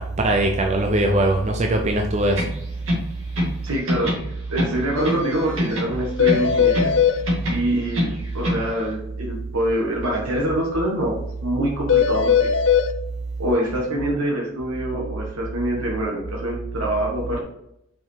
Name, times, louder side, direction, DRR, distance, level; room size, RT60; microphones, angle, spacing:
voice 1, 0.0-2.5, right 1 dB, 30° right, 2 dB, 0.6 m, -21 dB
sound 1, 2.3-3.6 3.9-5.3 5.6-7.0 7.3-8.7, left 1 dB, 65° right, 2.2 m, -25 dB
voice 2, 3.6-4.1 4.5-6.9 7.5-11.1 11.4-12.5 13.4-17.4, right 1 dB, 85° right, -2 dB, 1.5 m, -25 dB
sound 2, 5.0-5.1 5.3-5.4 5.7-5.8 6.2-7.2 11.9-12.9, left 7 dB, 60° left, 0.6 m, -18 dB
5.8 x 5.0 x 4.6 m, 0.79 s
head